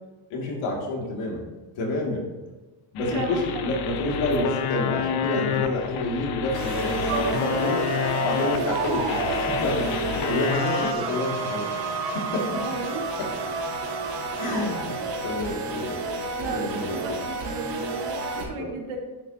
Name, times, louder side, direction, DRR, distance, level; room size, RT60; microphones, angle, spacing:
voice 1, 0.3-1.4 1.7-2.3 2.9-7.8 8.2-12.6 13.2-13.3 14.4-16.0 16.5-17.2 18.4-18.8, left 2 dB, 75° left, -1 dB, 2.6 m, -29 dB
sound 1, 3.0-10.9, left 9 dB, 50° left, 0.6 m, -29 dB
voice 2, 3.1-3.7 7.1-7.6 8.7-9.1 12.6-13.0 15.0-15.2 16.4-19.0, right 4 dB, 75° right, 0 dB, 2.1 m, -33 dB
sound 2, 6.5-18.4, right 3 dB, 55° right, 2.1 m, -30 dB
10.5 x 8.1 x 2.9 m, 1.2 s
cardioid pair, 180°, 49 cm